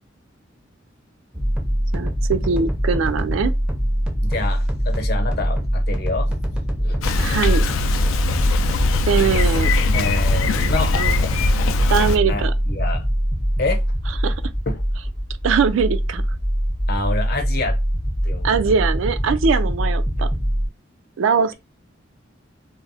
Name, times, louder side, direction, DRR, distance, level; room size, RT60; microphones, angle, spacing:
sound 1, 1.3-20.7, equal, 5° right, 0.4 m, -23 dB
voice 1, 1.9-3.5 7.2-7.7 9.1-9.7 10.4-11.2 11.9-12.5 14.2-14.4 15.4-16.2 18.4-20.3 21.2-21.5, right 6 dB, 75° right, 0.3 m, -21 dB
voice 2, 4.2-7.0 9.1-9.4 9.8-10.9 11.4-11.5 12.3-13.0 13.6-13.8 14.7-14.8 16.9-17.8 18.2-18.5, left 2 dB, 50° left, 0.8 m, -27 dB
Bicycle, 7.0-12.2, left 3 dB, 85° left, 0.4 m, -22 dB
2.4 x 2.0 x 3.9 m
head